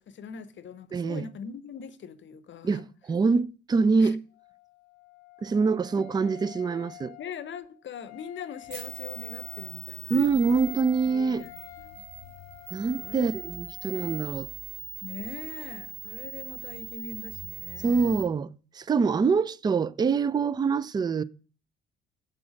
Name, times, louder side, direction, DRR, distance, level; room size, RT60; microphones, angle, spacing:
voice 1, 0.0-2.8 4.0-4.2 6.0-6.1 7.2-10.4 11.1-12.0 13.0-13.3 15.0-18.2, left 6 dB, 40° left, 0.7 m, -42 dB
voice 2, 0.9-1.3 2.6-4.2 5.4-7.1 10.1-11.4 12.7-14.5 17.8-21.2, right 5 dB, 15° right, 0.3 m, -25 dB
Wind instrument woodwind instrument, 4.3-14.3, left 20 dB, 75° left, 0.7 m, -49 dB
sound 1, 8.7-18.2, right 8 dB, 65° right, 1.8 m, -41 dB
7.6 x 6.1 x 5.0 m
hypercardioid pair, 60°, 29 cm